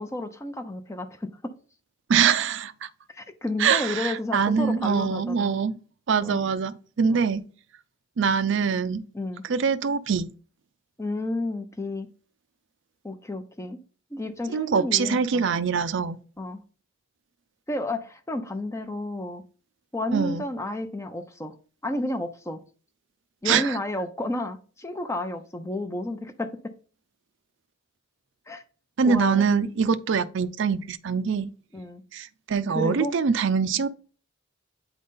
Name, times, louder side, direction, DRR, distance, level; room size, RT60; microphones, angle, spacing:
voice 1, 0.0-1.5 3.1-5.6 6.2-6.4 7.1-7.2 9.1-9.4 11.0-12.1 13.0-13.8 14.1-15.4 16.4-16.6 17.7-19.4 19.9-21.6 21.8-22.6 23.4-26.7 28.5-28.6 29.0-29.5 31.7-32.0 32.7-33.2, left 1 dB, 15° left, 0.6 m, -31 dB
voice 2, 2.1-2.9 3.6-5.8 6.1-7.4 8.2-9.0 9.5-10.3 14.5-16.2 20.1-20.4 23.5-23.8 29.0-31.5 32.1-33.9, right 6 dB, 60° right, 0.4 m, -24 dB
8.6 x 3.9 x 3.7 m
head